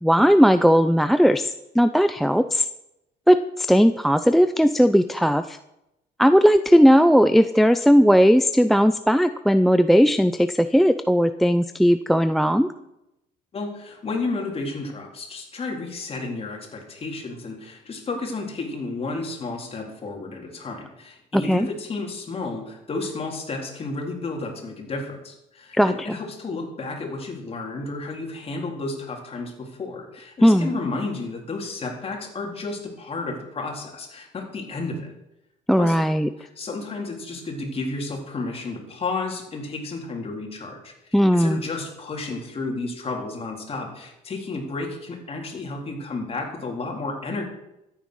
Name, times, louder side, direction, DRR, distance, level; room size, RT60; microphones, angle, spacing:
voice 1, 0.0-2.7 3.3-5.6 6.2-12.7 21.3-21.7 25.7-26.2 30.4-30.7 35.7-36.3 41.1-41.6, equal, ahead, 10 dB, 0.5 m, -17 dB
voice 2, 13.5-35.1 35.8-36.0 36.4-47.4, left 3 dB, 35° left, 1 dB, 3.9 m, -32 dB
14.0 x 9.3 x 6.4 m, 0.87 s
cardioid pair, 110°, 17 cm